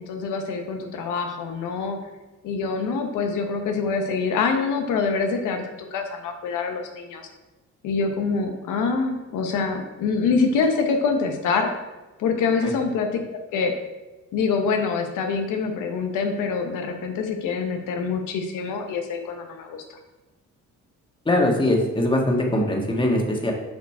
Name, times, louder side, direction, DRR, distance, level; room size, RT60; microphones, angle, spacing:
voice 1, 0.0-2.0 2.4-7.2 7.8-11.7 12.2-13.2 13.5-13.7 14.3-19.8, left 5 dB, 90° left, 4 dB, 1.0 m, -25 dB
voice 2, 21.2-23.5, left 1 dB, 15° left, 1 dB, 1.6 m, -21 dB
7.6 x 4.9 x 4.8 m, 1.1 s
cardioid pair, 90°, 30 cm